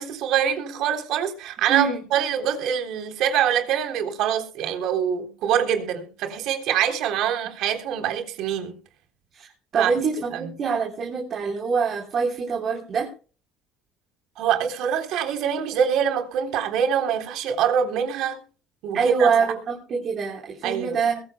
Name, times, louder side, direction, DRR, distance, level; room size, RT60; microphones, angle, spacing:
voice 1, 0.0-8.7 9.8-9.9 10.3-10.5 14.4-18.4 18.8-19.3 20.6-21.0, right 9 dB, 65° right, 3.6 m, -24 dB
voice 2, 1.7-2.1 9.3-9.5 9.7-13.1 18.9-21.2, right 5 dB, 45° right, 3.8 m, -24 dB
22.0 x 15.0 x 2.3 m
cardioid pair, 115°, 0 cm